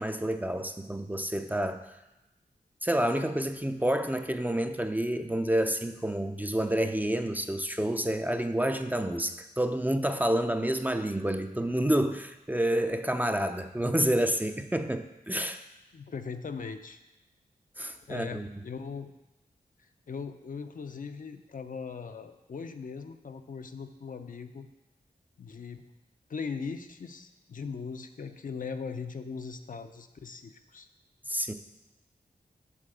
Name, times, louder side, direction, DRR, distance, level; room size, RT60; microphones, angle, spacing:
voice 1, 0.0-1.9 2.8-15.6 17.8-18.5 31.3-31.5, right 1 dB, 10° right, 7 dB, 0.5 m, -29 dB
voice 2, 15.9-17.0 18.1-19.1 19.8-24.7 25.4-25.8 26.3-30.9, left 5 dB, 60° left, 7 dB, 0.6 m, -39 dB
7.3 x 4.1 x 6.7 m, 0.99 s
cardioid pair, 60°, 16 cm